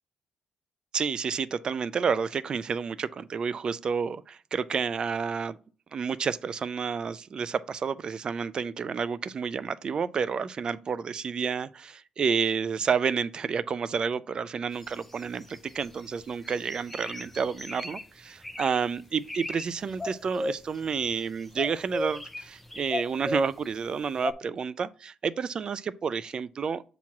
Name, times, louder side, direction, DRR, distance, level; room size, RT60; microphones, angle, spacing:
voice 1, 0.9-5.6 5.9-26.8, right 6 dB, 35° right, 0.3 m, -30 dB
sound 1, 14.8-16.0 16.4-18.0 18.4-18.8 19.2-19.6 19.9-21.2 21.6-23.6 24.2-24.3, left 2 dB, 5° left, 0.6 m, -35 dB
7.3 x 3.0 x 5.8 m
cardioid pair, 140°, 2 cm